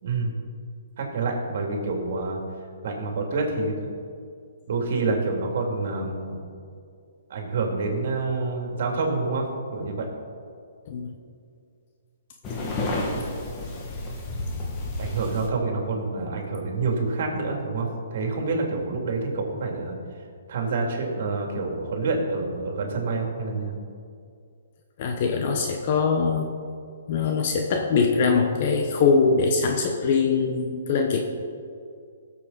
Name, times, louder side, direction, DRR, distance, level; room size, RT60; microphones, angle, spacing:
voice 1, 0.0-0.3 1.0-2.4 2.8-3.9 4.7-6.4 7.3-10.1 15.0-20.0 20.5-23.8, right 3 dB, 55° right, 1 dB, 2.7 m, -27 dB
sound 1, 12.4-15.5, left 2 dB, 25° left, 1.9 m, -30 dB
voice 2, 25.0-26.5 27.1-31.2, left 5 dB, 45° left, 3 dB, 1.1 m, -22 dB
16.5 x 7.3 x 4.1 m, 2.4 s
hypercardioid pair, 145°, 0 cm